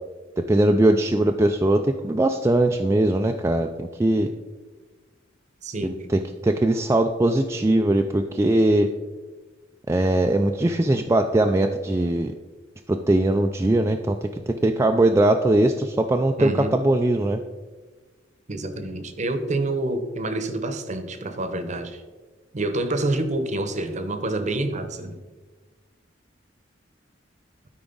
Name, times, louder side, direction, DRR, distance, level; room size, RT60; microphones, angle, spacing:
voice 1, 0.5-4.3 5.8-8.9 9.9-12.3 12.9-14.2 14.5-17.4, right 1 dB, 15° right, 4 dB, 0.3 m, -20 dB
voice 2, 5.6-6.0 16.4-16.7 18.5-22.0 22.5-25.2, right 2 dB, 40° right, 9 dB, 0.8 m, -27 dB
12.5 x 4.9 x 3.9 m, 1.3 s
head